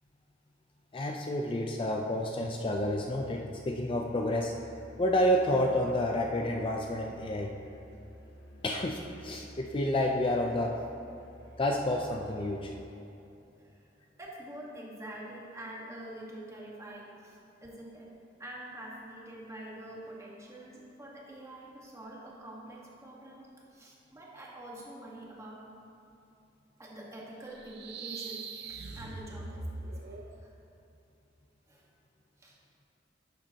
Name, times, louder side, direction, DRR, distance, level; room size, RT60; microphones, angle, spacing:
voice 1, 0.9-4.5 5.0-7.5 8.6-10.8 11.6-12.7, left 1 dB, 30° left, 1 dB, 0.4 m, -29 dB
Musical instrument, 2.3-12.7, equal, 65° left, 1.5 m, -52 dB
voice 2, 14.2-18.1 18.4-25.6 26.8-30.5 31.7-31.9 32.4-32.6, right 1 dB, 15° right, -4 dB, 1.3 m, -46 dB
sound 1, 27.5-30.4, right 3 dB, 65° right, 0.6 m, -41 dB
11.5 x 7.4 x 2.8 m, 2.8 s
head